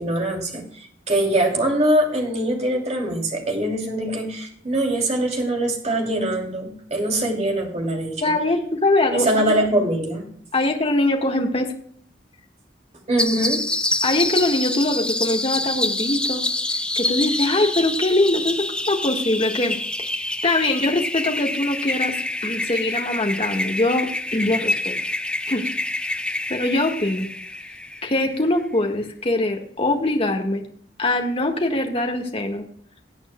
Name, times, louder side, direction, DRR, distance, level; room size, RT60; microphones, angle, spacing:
voice 1, 0.0-8.2 9.1-10.3 13.1-13.6, right 1 dB, 40° right, 0 dB, 2.9 m, -23 dB
voice 2, 8.2-9.5 10.5-11.7 14.0-16.4 16.9-22.2 22.4-25.0 25.5-25.7 26.5-27.3 28.0-30.6 31.0-32.6, left 2 dB, 35° left, 3 dB, 1.6 m, -22 dB
sound 1, 13.2-28.4, left 2 dB, 5° left, 0.5 m, -27 dB
19.0 x 9.1 x 2.2 m, 0.62 s
head